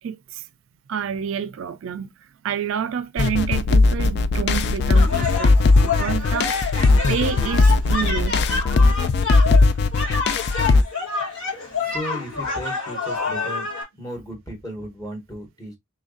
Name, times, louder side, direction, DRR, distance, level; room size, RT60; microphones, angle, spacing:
voice 1, 0.0-0.4 0.9-2.1 2.4-6.5 7.1-8.4, right 7 dB, 70° right, 0.3 m, -28 dB
sound 1, 3.2-10.8, left 3 dB, 55° left, 0.3 m, -18 dB
sound 2, 4.9-13.8, left 4 dB, 80° left, 1.7 m, -28 dB
voice 2, 11.8-13.7 13.9-15.8, equal, 15° left, 1.3 m, -35 dB
3.1 x 2.5 x 3.8 m
head